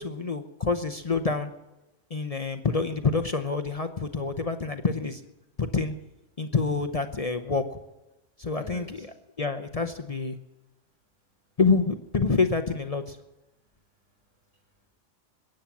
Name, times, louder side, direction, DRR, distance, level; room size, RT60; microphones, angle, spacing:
voice 1, 0.0-1.5 2.1-5.2 5.6-5.9 6.4-7.6 8.4-8.8 9.4-10.4 11.6-13.2, left 4 dB, 35° left, 9 dB, 0.7 m, -27 dB
voice 2, 7.5-7.8 8.5-9.2 10.5-11.1 11.4-11.6 13.5-14.9, equal, 85° right, 0 dB, 4.5 m, -52 dB
21.5 x 8.9 x 7.2 m, 0.99 s
omnidirectional pair, 1.2 m